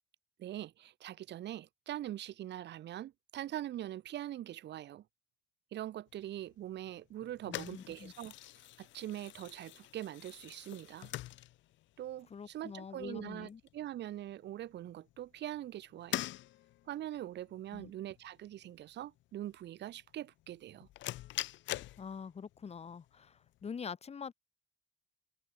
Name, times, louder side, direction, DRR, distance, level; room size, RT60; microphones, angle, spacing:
voice 1, 0.4-5.1 5.7-8.3 8.8-11.1 12.0-16.3 16.9-20.9, right 12 dB, 60° right, 0.6 m, -43 dB
sound 1, 6.1-23.7, left 15 dB, 70° left, 0.4 m, -45 dB
voice 2, 7.5-8.1 12.3-13.6 17.7-17.9 22.0-24.3, left 6 dB, 30° left, 0.8 m, -45 dB
cardioid pair, 90°, 20 cm